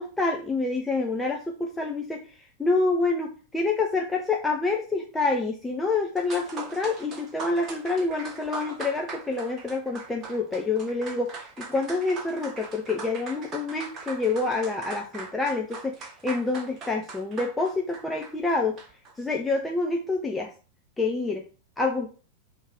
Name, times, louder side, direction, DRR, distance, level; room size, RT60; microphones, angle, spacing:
voice 1, 0.0-2.2 2.6-15.9 16.2-18.8 19.2-20.5 21.0-21.4 21.8-22.2, left 3 dB, 10° left, 1 dB, 0.8 m, -27 dB
sound 1, 6.2-19.1, right 4 dB, 30° right, 1.7 m, -41 dB
5.5 x 3.7 x 4.6 m, 0.36 s
figure-of-eight pair, 90°, 0 cm